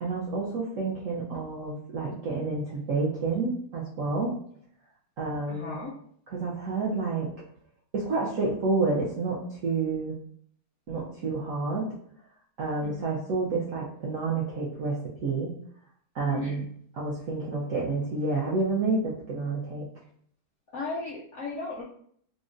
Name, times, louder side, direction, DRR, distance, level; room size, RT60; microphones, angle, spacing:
voice 1, 0.0-4.3 5.2-5.8 6.3-7.3 7.9-10.2 10.9-11.9 12.6-15.5 16.1-16.6 16.9-19.9, right 3 dB, 70° right, -5 dB, 0.8 m, -29 dB
voice 2, 5.5-5.9 12.8-13.2 16.3-16.7 20.7-21.8, left 3 dB, 70° left, -5 dB, 0.7 m, -36 dB
3.6 x 2.0 x 2.5 m, 0.63 s
omnidirectional pair, 1.8 m